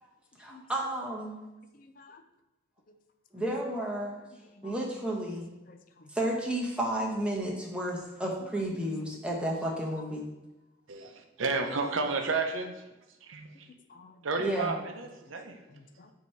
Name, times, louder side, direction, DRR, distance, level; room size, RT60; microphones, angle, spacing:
voice 1, 0.4-1.4 3.3-4.2 4.6-5.5 6.1-10.3 14.4-14.8, right 1 dB, 5° right, -2 dB, 0.9 m, -32 dB
voice 2, 1.7-2.2 2.9-3.0 3.3-3.5 4.5-4.7 5.7-6.1 8.4-8.5 10.0-10.1 13.9-14.3 15.7-16.1, left 4 dB, 45° left, 7 dB, 0.4 m, -54 dB
voice 3, 10.9-12.7 13.3-13.5 14.2-15.6, right 3 dB, 85° right, 5 dB, 0.7 m, -31 dB
8.2 x 2.8 x 4.4 m, 1.0 s
head